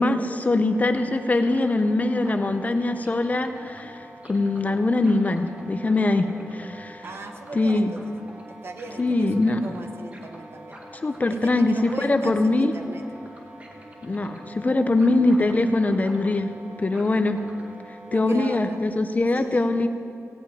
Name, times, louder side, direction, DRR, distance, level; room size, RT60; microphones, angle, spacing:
voice 1, 0.0-7.0 7.5-7.9 9.0-9.8 11.0-12.7 14.0-16.5 16.8-17.4 18.1-19.9, left 2 dB, 30° left, 8 dB, 0.6 m, -22 dB
sound 1, 0.6-18.2, right 1 dB, 25° right, 1.4 m, -44 dB
voice 2, 7.0-8.1 8.5-10.8 11.3-13.0 18.1-18.8 19.3-19.7, right 2 dB, 50° right, 5 dB, 1.0 m, -39 dB
16.5 x 5.7 x 8.9 m, 2.5 s
wide cardioid pair, 165°, 5 cm